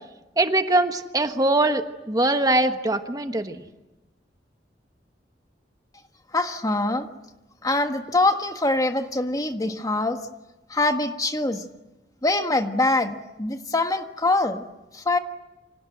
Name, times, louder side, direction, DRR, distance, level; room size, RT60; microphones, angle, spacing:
voice 1, 0.4-3.6, right 2 dB, 20° right, 7 dB, 1.3 m, -22 dB
voice 2, 6.3-7.1 7.6-10.2 10.7-11.6 12.2-14.6 14.9-15.2, left 2 dB, 20° left, 6 dB, 1.5 m, -24 dB
28.5 x 25.5 x 7.9 m, 1.0 s
head